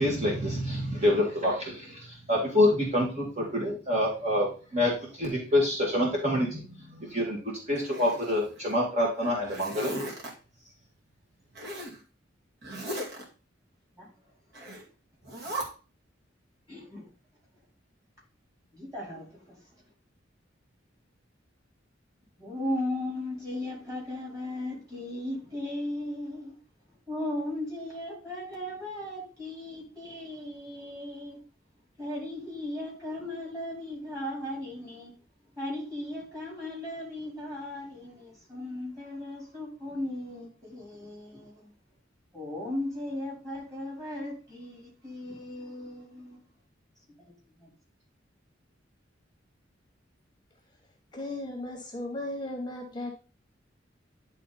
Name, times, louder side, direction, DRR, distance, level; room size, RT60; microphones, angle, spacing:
voice 1, 0.0-7.4 7.7-9.9, left 1 dB, 40° right, 1.9 m, -27 dB
Zipper (clothing), 7.7-8.7 9.2-10.3 11.5-12.0 12.6-13.2 14.5-14.8 15.2-15.6, equal, 55° right, 2.3 m, -37 dB
voice 2, 16.7-17.1 18.7-19.6 22.4-26.6 27.1-31.4 32.0-35.1 35.6-41.7 42.3-46.4 47.2-47.3 47.6-47.7, left 1 dB, 20° right, 4.2 m, -37 dB
voice 3, 51.1-53.1, left 1 dB, 25° left, 1.0 m, -36 dB
10.0 x 3.7 x 4.1 m
head